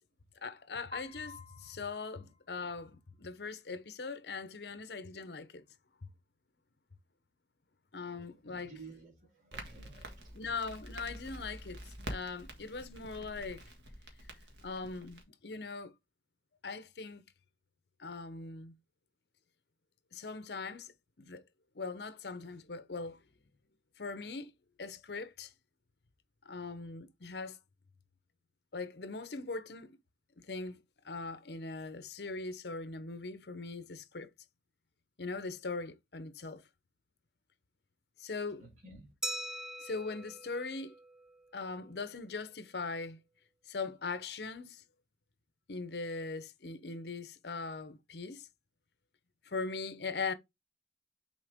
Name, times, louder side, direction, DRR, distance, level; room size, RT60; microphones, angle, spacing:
voice 1, 0.4-5.6 7.9-8.7 10.3-13.6 14.6-15.9 16.6-17.3 18.0-18.7 20.1-20.9 21.2-21.4 21.7-23.2 24.0-24.5 24.8-25.5 26.4-27.6 28.7-30.0 30.4-34.3 35.2-36.6 38.2-38.6 39.8-41.0 41.5-43.2 43.7-44.8 45.7-48.5 49.4-50.3, left 4 dB, 70° left, 0.8 m, -40 dB
Piano, 0.9-3.0, left 4 dB, 30° left, 2.7 m, -51 dB
voice 2, 8.4-10.4 38.5-39.1, right 3 dB, 45° right, 2.5 m, -53 dB
Crackle, 9.5-15.2, right 1 dB, 80° right, 1.7 m, -47 dB
Glass, 39.2-41.7, equal, 5° right, 0.4 m, -42 dB
6.3 x 4.4 x 3.6 m
head